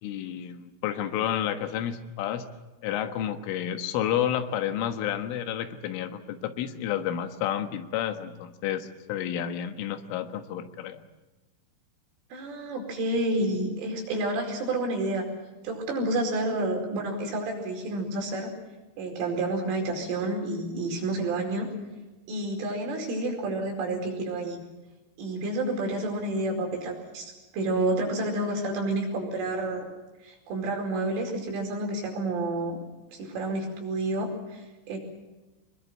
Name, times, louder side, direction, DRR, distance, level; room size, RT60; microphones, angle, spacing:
voice 1, 0.0-2.5 2.8-11.0, left 10 dB, 85° left, 8 dB, 4.0 m, -30 dB
voice 2, 12.3-15.3 15.6-18.5 19.0-21.7 22.3-24.6 25.2-29.9 30.2-32.8 33.1-35.0, right 2 dB, 85° right, 1 dB, 7.4 m, -29 dB
25.5 x 21.5 x 7.6 m, 1.1 s
omnidirectional pair, 5.6 m